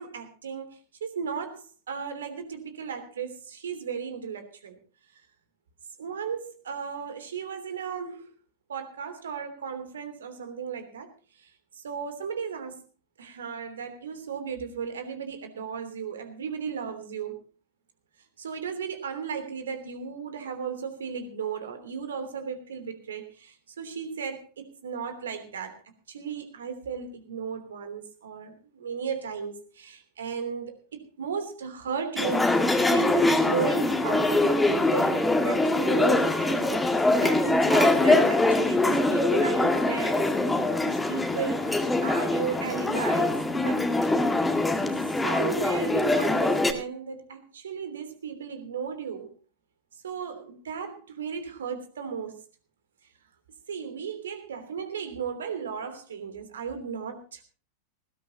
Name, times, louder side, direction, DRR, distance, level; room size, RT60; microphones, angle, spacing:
voice 1, 0.0-4.8 6.0-8.3 8.7-11.1 11.4-11.5 11.7-12.9 13.2-17.4 18.4-25.7 26.1-32.5 32.9-40.5 40.8-43.9 45.2-49.3 50.0-52.4 53.7-57.4, right 6 dB, 65° right, 8 dB, 3.1 m, -35 dB
sound 1, 32.2-46.7, left 2 dB, 5° left, 2.0 m, -23 dB
19.5 x 17.0 x 2.9 m, 0.35 s
figure-of-eight pair, 90°, 0 cm